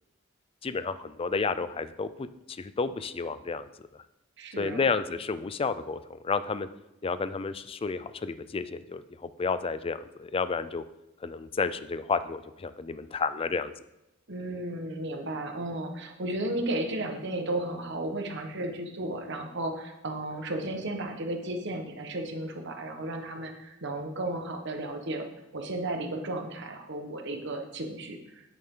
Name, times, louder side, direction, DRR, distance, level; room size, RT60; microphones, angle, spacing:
voice 1, 0.6-3.7 4.6-6.7 7.0-10.8 11.2-13.7, left 4 dB, 30° left, 13 dB, 0.4 m, -31 dB
voice 2, 4.4-4.8 14.3-25.3 25.5-28.2, right 1 dB, 60° right, 4 dB, 1.3 m, -34 dB
9.6 x 8.6 x 3.8 m, 0.91 s
head